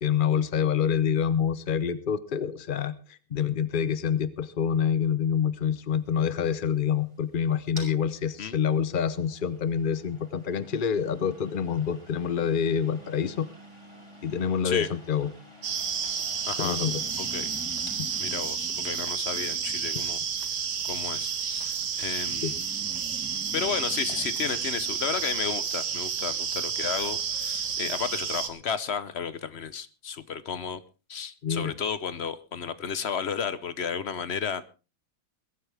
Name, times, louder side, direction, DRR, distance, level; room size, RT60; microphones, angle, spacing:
voice 1, 0.0-13.5 14.2-15.3 16.6-17.0 18.0-18.1 22.4-22.5 31.4-31.7, left 7 dB, 80° left, 14 dB, 0.4 m, -27 dB
sound 1, 5.9-24.6, equal, 15° right, 5.3 m, -52 dB
sound 2, 15.6-28.5, right 7 dB, 60° right, 2.1 m, -31 dB
voice 2, 16.4-16.8 17.2-17.5 18.2-22.6 23.5-30.8 31.1-34.7, left 6 dB, 50° left, 14 dB, 0.8 m, -33 dB
Breathing, 16.7-20.4 22.2-25.3, equal, 5° left, 1.4 m, -46 dB
21.5 x 13.0 x 3.5 m, 0.32 s
omnidirectional pair, 2.1 m